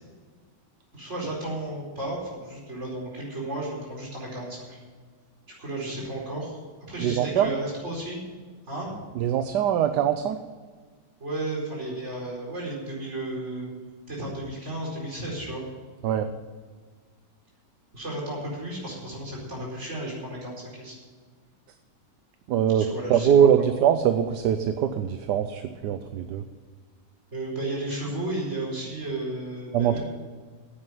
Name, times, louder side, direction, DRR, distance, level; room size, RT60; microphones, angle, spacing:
voice 1, 0.9-4.8 5.6-6.6 6.9-8.2 8.7-9.0 11.2-13.7 14.1-15.6 17.9-20.9 22.7-23.7 27.3-30.0, right 1 dB, 40° right, -4 dB, 4.9 m, -33 dB
voice 2, 7.0-7.5 9.2-10.4 16.0-16.3 22.5-26.4 29.7-30.0, right 9 dB, 75° right, 9 dB, 1.2 m, -22 dB
9.7 x 9.0 x 9.6 m, 1.5 s
omnidirectional pair, 1.9 m